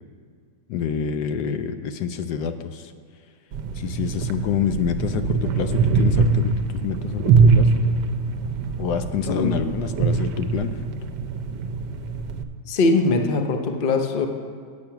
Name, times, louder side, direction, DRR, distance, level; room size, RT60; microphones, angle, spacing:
voice 1, 0.7-2.9 3.8-7.9 8.8-10.8, left 7 dB, 75° left, 9 dB, 1.1 m, -27 dB
sound 1, 3.5-12.4, right 4 dB, 80° right, 1.2 m, -22 dB
voice 2, 9.3-9.7 12.7-14.3, left 3 dB, 45° left, 5 dB, 0.7 m, -21 dB
8.6 x 8.4 x 5.8 m, 2.2 s
omnidirectional pair, 1.8 m